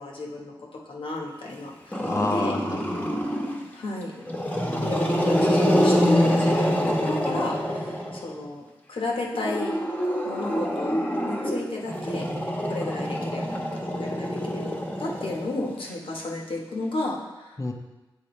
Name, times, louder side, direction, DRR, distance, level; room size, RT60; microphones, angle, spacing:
voice 1, 0.0-2.5 3.7-4.3 4.8-9.8 10.2-12.3 12.7-17.6, left 2 dB, 65° left, -1 dB, 1.2 m, -32 dB
Growling, 1.9-3.7 4.2-8.4 9.3-15.9, equal, 15° left, 1.2 m, -26 dB
voice 2, 2.0-3.2 4.5-5.0 17.6-17.7, left 2 dB, 30° left, 1 dB, 0.9 m, -30 dB
8.5 x 3.7 x 3.2 m, 1.1 s
cardioid pair, 45°, 10 cm